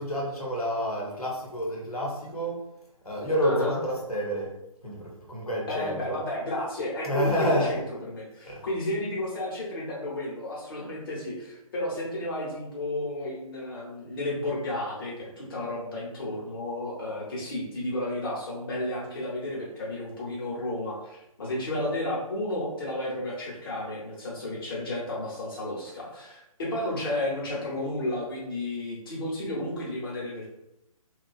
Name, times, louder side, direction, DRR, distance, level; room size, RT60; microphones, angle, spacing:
voice 1, 0.0-2.6 3.0-4.5 4.8-6.2 7.0-7.8 8.4-8.7, equal, 80° left, -3 dB, 0.9 m, -29 dB
voice 2, 3.4-3.7 5.7-30.5, left 1 dB, 40° left, -4 dB, 0.9 m, -32 dB
2.6 x 2.3 x 2.4 m, 0.85 s
figure-of-eight pair, 135°, 19 cm